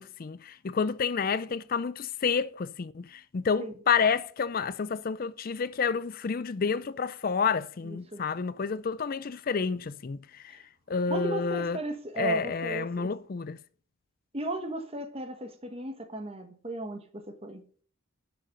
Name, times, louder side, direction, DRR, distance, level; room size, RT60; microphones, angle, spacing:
voice 1, 0.0-10.4 10.9-11.8 12.2-13.6, left 5 dB, 40° left, 0.4 m, -29 dB
voice 2, 7.8-8.2 10.5-10.6 11.1-13.1 14.3-17.6, right 2 dB, 25° right, 1.3 m, -36 dB
10.5 x 6.3 x 5.3 m
head